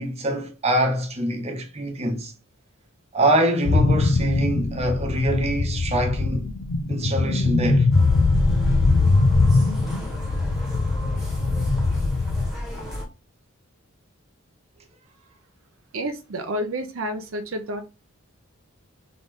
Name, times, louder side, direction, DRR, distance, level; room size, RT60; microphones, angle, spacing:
voice 1, 0.0-2.3 3.1-6.5 6.9-7.9, right 1 dB, 30° right, 0.9 m, -24 dB
sound 1, 3.7-12.5, left 3 dB, 90° left, 0.5 m, -21 dB
sound 2, 7.9-13.1, equal, ahead, 1.3 m, -33 dB
voice 2, 15.9-17.8, right 1 dB, 70° right, 0.6 m, -29 dB
3.8 x 3.5 x 3.6 m
head